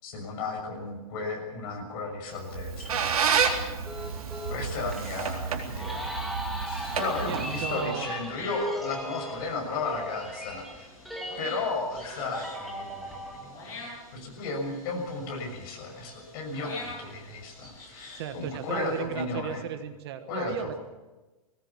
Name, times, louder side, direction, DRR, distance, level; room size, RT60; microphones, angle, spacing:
voice 1, 0.0-3.1 4.5-6.2 6.6-10.9 11.4-19.6 20.3-20.8, left 3 dB, 35° left, 1 dB, 6.6 m, -34 dB
sound 1, 2.4-13.4, equal, ahead, 2.2 m, -38 dB
Squeak, 2.4-7.9, right 6 dB, 70° right, 3.9 m, -30 dB
sound 2, 3.9-19.0, left 2 dB, 15° left, 7.6 m, -47 dB
voice 2, 7.2-8.1 18.1-20.7, right 9 dB, 45° right, 9 dB, 1.3 m, -35 dB
21.0 x 18.5 x 7.2 m, 1.2 s
hypercardioid pair, 165°, 19 cm